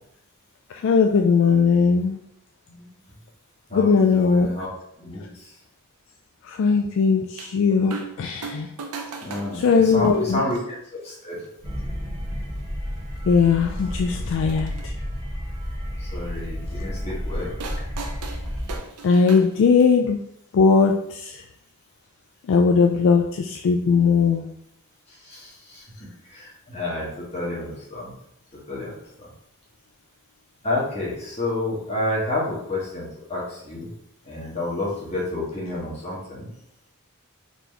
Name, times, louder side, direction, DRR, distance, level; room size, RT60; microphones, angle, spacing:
voice 1, 0.8-2.2 3.7-4.5 6.5-8.7 9.5-10.4 13.3-14.9 19.0-20.2 20.5-21.4 22.5-24.5, left 5 dB, 60° left, 3 dB, 0.3 m, -19 dB
voice 2, 3.7-4.7 5.0-5.5 9.2-10.8 11.0-11.4 16.0-17.5 25.2-28.1 28.7-28.9 29.2-29.3 30.6-33.9 34.2-36.5, left 1 dB, 30° left, -5 dB, 1.4 m, -30 dB
sound 1, 7.4-7.5 7.9-8.2 8.4-10.6 11.4-11.5 12.5-12.6 13.0-13.1 14.3-14.9 17.6-20.0 21.2-21.3, right 4 dB, 85° right, 0.6 m, -37 dB
sound 2, 11.6-18.8, equal, 20° right, 1.5 m, -31 dB
4.1 x 2.9 x 3.3 m, 0.74 s
head